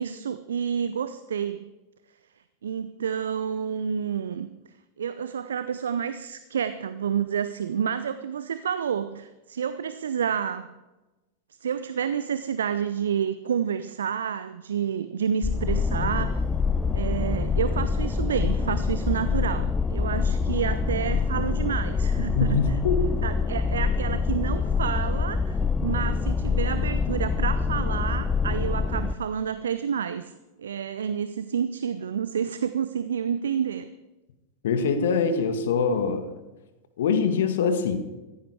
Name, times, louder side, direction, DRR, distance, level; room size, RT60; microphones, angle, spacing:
voice 1, 0.0-1.6 2.6-4.5 5.0-10.7 11.5-16.4 16.9-22.8 23.2-30.3 30.6-33.9, right 7 dB, 65° right, 12 dB, 0.7 m, -29 dB
sound 1, 15.4-29.1, left 5 dB, 15° left, 0.7 m, -25 dB
voice 2, 22.2-23.1 34.6-36.4 37.0-38.0, left 5 dB, 60° left, 9 dB, 1.9 m, -24 dB
15.5 x 14.5 x 4.8 m, 1.1 s
figure-of-eight pair, 90°, 0 cm